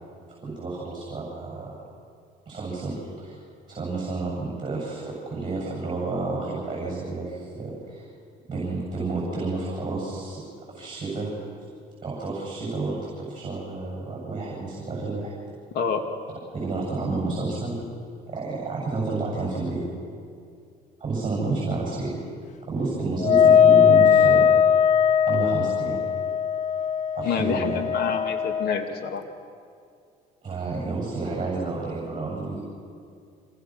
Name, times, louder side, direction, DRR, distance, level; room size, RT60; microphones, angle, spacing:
voice 1, 0.4-1.7 2.5-3.4 3.7-8.0 8.5-11.3 12.0-15.3 16.5-17.8 18.3-19.8 21.0-22.2 22.7-24.6 25.3-26.0 27.1-27.9 30.4-32.6, right 3 dB, 30° right, -4 dB, 7.5 m, -30 dB
Wind instrument woodwind instrument, 23.2-28.9, left 8 dB, 45° left, 0.5 m, -19 dB
voice 2, 27.2-29.2, left 6 dB, 70° left, 6 dB, 2.5 m, -27 dB
26.5 x 26.5 x 6.3 m, 2.4 s
cardioid pair, 110°, 17 cm